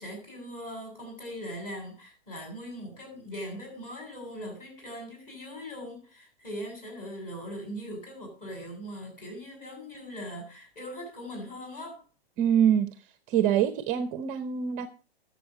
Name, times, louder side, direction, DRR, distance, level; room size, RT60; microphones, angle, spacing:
voice 1, 0.0-12.0, equal, 25° left, 7.7 m, -40 dB
voice 2, 12.4-12.9 13.3-14.9, right 9 dB, 25° right, 0.7 m, -24 dB
19.5 x 7.4 x 3.8 m
figure-of-eight pair, 115°, 31 cm